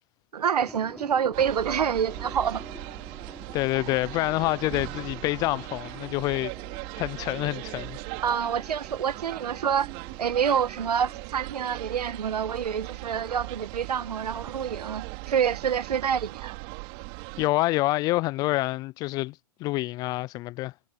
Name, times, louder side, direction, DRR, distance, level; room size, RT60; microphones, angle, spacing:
voice 1, 0.3-2.6 8.2-9.9 10.2-16.6, right 8 dB, 70° right, 1.9 m, -27 dB
Drum, 0.6-11.6, left 1 dB, 5° left, 7.4 m, -48 dB
sound 1, 1.3-17.5, right 32 dB, 35° right, 3.8 m, -39 dB
voice 2, 3.5-6.5 7.0-8.0 17.4-20.7, left 19 dB, 20° left, 0.4 m, -27 dB
hypercardioid pair, 135°, 21 cm